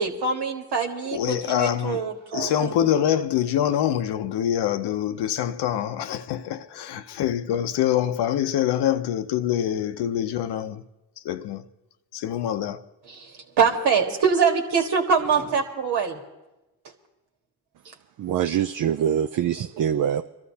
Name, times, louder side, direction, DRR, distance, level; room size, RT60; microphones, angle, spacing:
voice 1, 0.0-3.0 13.1-16.2, right 6 dB, 70° right, 1.8 m, -24 dB
voice 2, 1.1-2.0 2.3-10.8 11.2-11.6 12.1-12.8, left 10 dB, 70° left, 0.8 m, -25 dB
voice 3, 18.2-20.2, right 9 dB, 50° right, 0.5 m, -24 dB
24.0 x 13.0 x 2.8 m
supercardioid pair, 70°, 41 cm